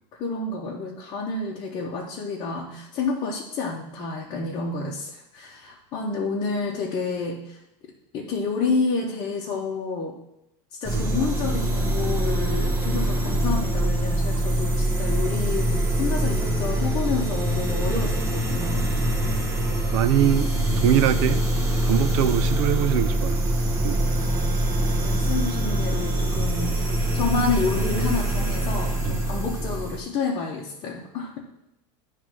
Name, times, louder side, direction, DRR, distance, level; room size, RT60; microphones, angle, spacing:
voice 1, 0.1-7.6 8.1-10.1 10.8-18.9 24.8-26.9 27.1-31.4, left 4 dB, 30° left, -4 dB, 0.9 m, -29 dB
sound 1, 10.8-30.0, right 1 dB, 20° right, 0.9 m, -24 dB
voice 2, 19.9-20.5 20.8-21.4 21.8-23.4 23.8-24.0 29.0-29.1, right 11 dB, 75° right, 13 dB, 0.6 m, -22 dB
9.8 x 3.3 x 6.0 m, 0.84 s
cardioid pair, 180°, 16 cm